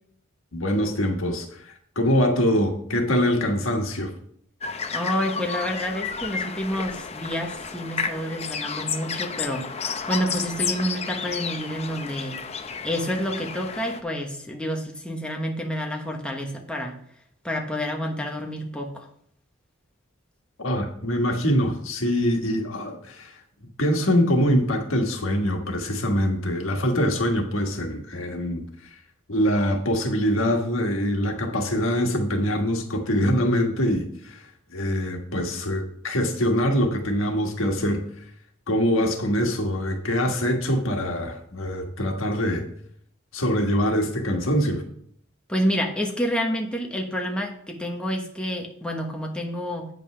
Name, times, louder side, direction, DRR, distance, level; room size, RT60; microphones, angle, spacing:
voice 1, 0.5-1.7 1.9-4.1 20.6-23.3 23.8-28.6 29.3-34.4 34.7-38.0 38.7-42.6 43.3-44.8, equal, 80° left, 3 dB, 1.5 m, -24 dB
sound 1, 4.6-14.0, left 6 dB, 30° left, 0.7 m, -32 dB
voice 2, 4.9-12.4 12.8-17.0 17.4-19.1 45.5-49.9, equal, 5° left, 1 dB, 1.0 m, -29 dB
8.7 x 5.4 x 5.6 m, 0.65 s
head